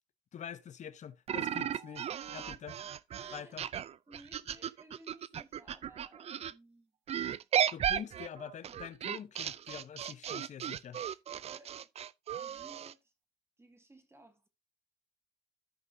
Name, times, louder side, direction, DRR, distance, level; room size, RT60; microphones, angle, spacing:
voice 1, 0.3-2.7 3.3-3.6 7.7-11.0, left 8 dB, 45° left, 1.0 m, -45 dB
sound 1, 1.3-6.5 7.1-12.9, right 9 dB, 40° right, 0.4 m, -35 dB
voice 2, 2.3-2.6 3.2-3.7 4.1-6.9 8.0-8.2 11.4-11.9 12.3-13.1 13.6-14.5, right 2 dB, 15° right, 2.0 m, -58 dB
14.0 x 5.1 x 2.7 m
cardioid pair, 110°, 17 cm